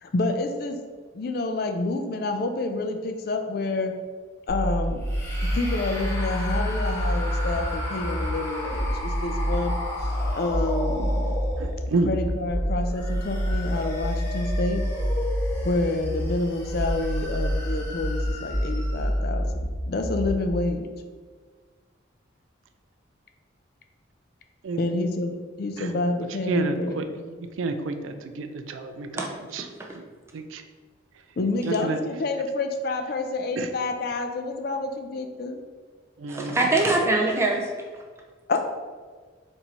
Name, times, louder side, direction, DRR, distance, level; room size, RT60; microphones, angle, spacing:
voice 1, 0.0-0.8 1.1-3.9 4.5-5.0 5.4-9.7 10.3-11.3 12.0-14.8 15.6-19.5 19.9-20.9 24.8-27.3 31.4-35.6 38.5-38.6, left 2 dB, 50° left, 5 dB, 0.4 m, -28 dB
sound 1, 4.5-20.5, equal, 55° right, 0.8 m, -28 dB
sound 2, 5.0-12.1 12.8-19.3, left 1 dB, 15° left, 0.9 m, -36 dB
voice 2, 11.6-12.1 24.6-25.0 25.8-26.0 26.5-27.0 27.5-29.7 30.3-30.6 31.1-31.2 31.6-32.0 33.6-33.7 36.2-36.6, right 3 dB, 85° right, 8 dB, 0.4 m, -30 dB
voice 3, 36.3-37.7, right 2 dB, 15° right, -1 dB, 0.5 m, -23 dB
4.4 x 2.6 x 4.2 m, 1.5 s
head